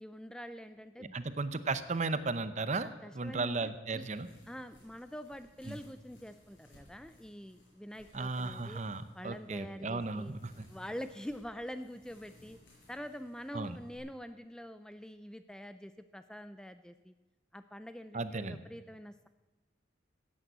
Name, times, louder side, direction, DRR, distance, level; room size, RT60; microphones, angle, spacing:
voice 1, 0.0-1.2 2.8-4.1 4.5-8.8 9.1-10.3 10.7-12.6 12.9-17.1 17.5-19.3, equal, 5° left, 11 dB, 0.4 m, -45 dB
voice 2, 1.0-2.9 3.1-4.3 5.7-5.8 8.1-10.6 13.5-13.8 18.1-18.6, right 3 dB, 40° right, 13 dB, 0.7 m, -35 dB
sound 1, 4.1-14.0, left 1 dB, 80° left, 6.4 m, -62 dB
15.5 x 8.8 x 8.0 m, 1.1 s
head